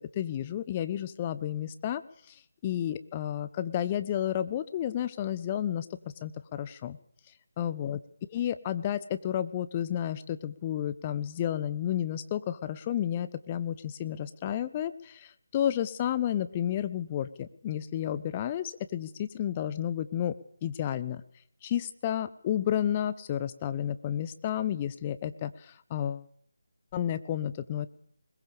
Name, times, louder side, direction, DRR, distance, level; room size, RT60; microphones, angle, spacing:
voice 1, 0.1-2.0 2.3-2.4 2.6-5.9 6.2-7.0 7.6-8.0 8.3-20.3 20.6-21.2 21.6-26.2 26.9-27.9, left 10 dB, 20° left, 13 dB, 0.9 m, -31 dB
21.0 x 21.0 x 7.0 m, 0.64 s
figure-of-eight pair, 155°, 0 cm